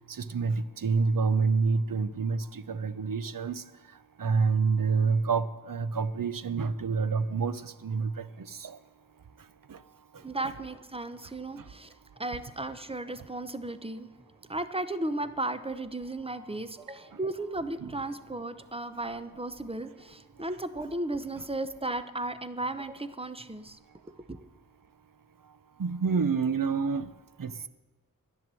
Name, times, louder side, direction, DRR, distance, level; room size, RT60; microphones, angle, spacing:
voice 1, 0.1-3.6 4.2-8.8 9.7-9.8 17.8-17.9 25.8-27.0 27.4-27.5, right 5 dB, 70° right, 14 dB, 0.7 m, -28 dB
voice 2, 10.2-11.9 12.2-14.1 14.5-23.8 24.1-24.4, right 2 dB, 15° right, 11 dB, 0.8 m, -35 dB
11.0 x 10.0 x 7.6 m, 1.2 s
wide cardioid pair, 60°, 34 cm